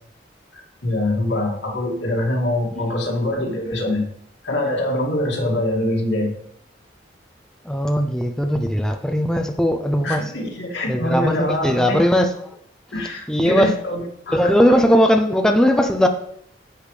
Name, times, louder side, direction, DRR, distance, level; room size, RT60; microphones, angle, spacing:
voice 1, 0.5-4.1 4.4-6.3 10.0-12.0 12.9-14.9, left 1 dB, 80° left, -2 dB, 2.4 m, -24 dB
voice 2, 7.7-10.2 10.9-12.3 13.3-13.8 14.3-16.1, equal, 5° left, 4 dB, 0.5 m, -18 dB
10.0 x 8.5 x 3.3 m, 0.70 s
head